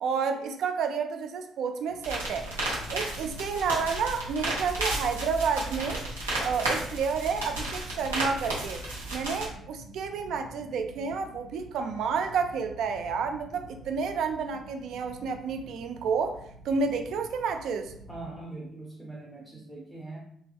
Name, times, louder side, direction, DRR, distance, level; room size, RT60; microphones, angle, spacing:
voice 1, 0.0-2.5 2.9-6.0 6.4-8.9 9.1-16.4 16.6-17.9, right 5 dB, 55° right, 6 dB, 0.3 m, -30 dB
sound 1, 1.9-18.4, equal, 75° left, 0.4 m, -49 dB
sound 2, 2.0-9.5, right 1 dB, 80° right, 0.7 m, -33 dB
voice 2, 18.1-20.2, right 2 dB, 5° right, -5 dB, 0.6 m, -41 dB
2.9 x 2.6 x 2.3 m, 0.68 s
figure-of-eight pair, 45°, 0 cm